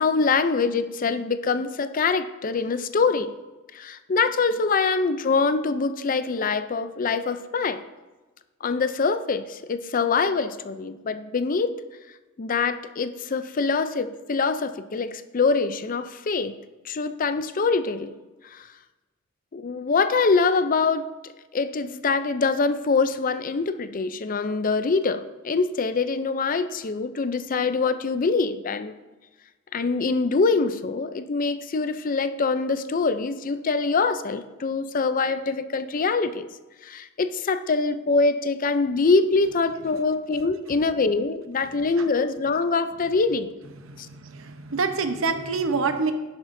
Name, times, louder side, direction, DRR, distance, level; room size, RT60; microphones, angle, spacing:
voice 1, 0.0-3.3 3.7-7.8 8.6-11.7 12.4-16.6 16.8-18.1 18.5-18.7 19.5-21.1 21.5-28.9 29.7-36.5 36.8-43.5 44.0-44.1, left 4 dB, 40° left, 11 dB, 0.5 m, -24 dB
voice 2, 43.9-46.1, right 4 dB, 75° right, 7 dB, 0.9 m, -26 dB
11.5 x 10.5 x 2.7 m, 1.2 s
head